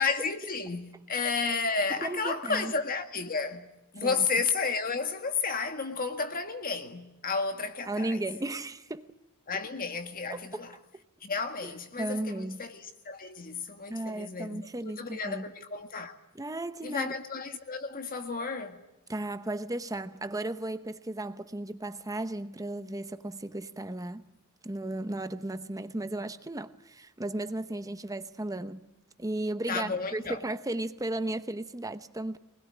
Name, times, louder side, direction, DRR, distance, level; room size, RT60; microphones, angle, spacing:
voice 1, 0.0-3.7 3.9-8.2 9.5-10.7 11.2-16.2 16.8-18.8 29.7-30.4, left 4 dB, 40° left, 1.8 m, -32 dB
voice 2, 2.0-2.7 4.0-4.3 7.9-9.1 10.3-10.6 11.6-12.6 13.9-15.5 16.3-17.1 19.1-24.3 24.6-28.8 29.2-32.4, right 1 dB, 15° right, 0.8 m, -35 dB
25.0 x 20.5 x 10.0 m
head